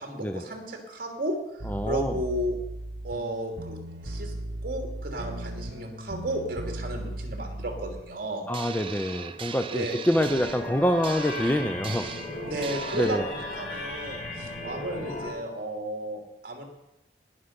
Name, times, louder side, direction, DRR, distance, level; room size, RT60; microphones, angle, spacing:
voice 1, 0.0-2.6 3.0-4.3 4.6-8.5 9.7-10.0 12.5-16.6, right 1 dB, 55° right, 2 dB, 2.8 m, -33 dB
sound 1, 1.6-8.0, right 1 dB, 85° right, 1.2 m, -37 dB
voice 2, 1.7-2.2 8.5-12.1 12.9-13.2, equal, 10° left, 8 dB, 0.5 m, -26 dB
sound 2, 8.5-13.2, right 6 dB, 30° right, 0.6 m, -39 dB
sound 3, 10.1-15.3, left 2 dB, 90° left, 3.5 m, -36 dB
19.5 x 6.6 x 5.9 m, 0.91 s
head